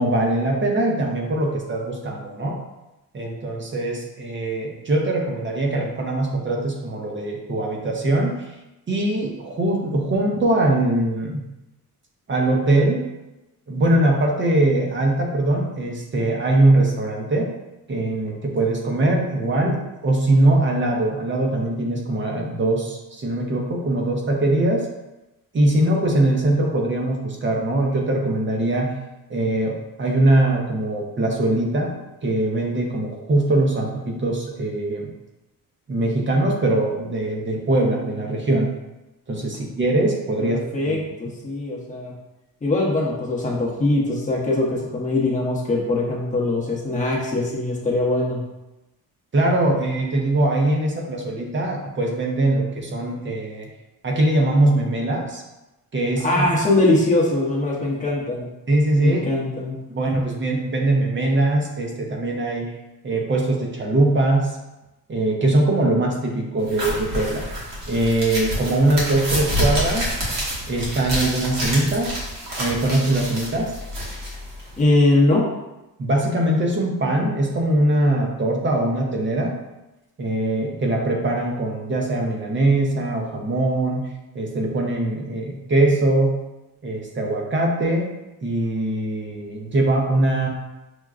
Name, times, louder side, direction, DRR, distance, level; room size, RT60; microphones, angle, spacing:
voice 1, 0.0-2.6 3.1-8.4 8.9-11.4 12.3-13.0 13.7-17.5 17.9-24.9 25.5-28.9 29.3-35.1 35.9-38.7 39.3-40.6 40.9-41.0 49.3-53.7 54.0-55.4 55.9-56.5 58.7-59.2 59.9-62.7 63.0-64.6 65.1-67.4 67.9-70.1 70.7-72.1 72.6-73.8 76.0-79.5 80.2-84.1 84.3-86.4 86.8-88.1 88.4-90.5, right 1 dB, 30° right, 0 dB, 0.6 m, -21 dB
voice 2, 40.4-42.1 42.6-48.4 56.2-58.5 59.0-59.7 74.8-75.5, left 2 dB, 20° left, -3 dB, 0.8 m, -21 dB
sound 1, 66.7-74.8, equal, 60° right, 1.3 m, -28 dB
6.1 x 2.2 x 2.4 m, 0.98 s
cardioid pair, 140°, 37 cm